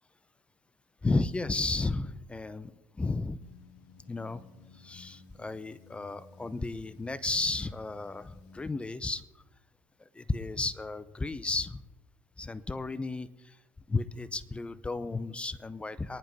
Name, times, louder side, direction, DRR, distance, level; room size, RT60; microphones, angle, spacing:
voice 1, 1.0-2.7 3.0-3.4 4.1-4.4 4.8-9.2 10.1-11.8 12.4-13.6 13.9-16.2, left 3 dB, 15° left, 16 dB, 0.5 m, -33 dB
sound 1, 3.4-8.8, left 5 dB, 70° left, 1.6 m, -55 dB
24.0 x 10.5 x 2.7 m, 1.1 s
hypercardioid pair, 75°, 7 cm